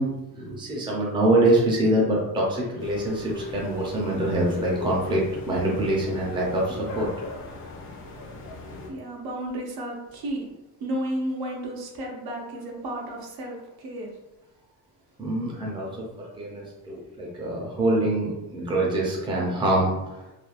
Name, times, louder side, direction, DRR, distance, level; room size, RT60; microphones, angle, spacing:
voice 1, 0.0-7.1 15.2-19.9, right 1 dB, 15° right, -4 dB, 0.5 m, -25 dB
sound 1, 2.8-8.9, left 3 dB, 35° left, 0.5 m, -38 dB
voice 2, 8.9-10.5 10.8-14.1, right 1 dB, 75° right, 0 dB, 0.8 m, -32 dB
3.1 x 2.2 x 2.4 m, 1.0 s
cardioid pair, 165°, 37 cm